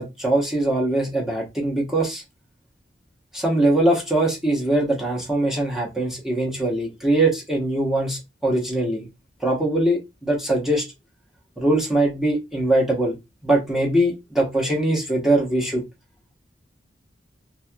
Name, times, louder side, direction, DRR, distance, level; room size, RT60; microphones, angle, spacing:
voice 1, 0.0-2.2 3.3-9.1 9.4-10.8 11.6-13.2 13.4-15.8, right 1 dB, ahead, 0.9 m, -22 dB
3.2 x 2.7 x 2.2 m
head